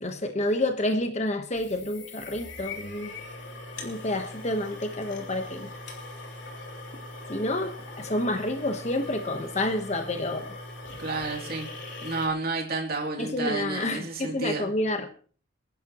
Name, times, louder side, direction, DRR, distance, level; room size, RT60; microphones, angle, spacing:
voice 1, 0.0-3.1 3.8-5.7 7.3-10.5 12.0-12.1 13.2-15.1, left 1 dB, 35° left, 6 dB, 1.1 m, -29 dB
sound 1, 1.5-12.3, left 2 dB, 70° left, 3.3 m, -41 dB
voice 2, 11.0-11.7 12.0-14.6, right 3 dB, 55° right, 0 dB, 2.9 m, -31 dB
27.5 x 11.0 x 3.0 m, 0.42 s
head